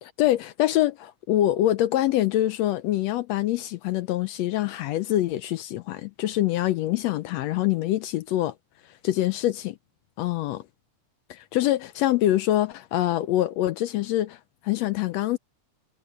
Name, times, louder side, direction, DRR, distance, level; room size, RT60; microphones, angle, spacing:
voice 1, 0.0-8.5 9.0-9.8 10.2-10.6 11.3-15.4, left 14 dB, 80° left, 1.6 m, -25 dB
omnidirectional pair, 3.4 m